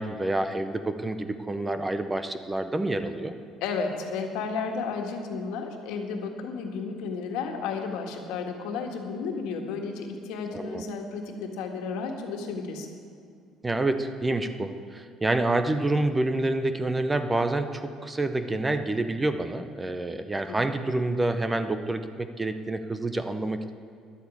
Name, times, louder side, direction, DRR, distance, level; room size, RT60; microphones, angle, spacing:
voice 1, 0.0-3.3 10.5-10.8 13.6-23.7, right 2 dB, 10° right, 10 dB, 0.6 m, -28 dB
voice 2, 3.6-12.9 20.5-20.6, left 5 dB, 85° left, 3 dB, 1.7 m, -33 dB
11.0 x 8.2 x 8.3 m, 2.3 s
cardioid pair, 150°, 0 cm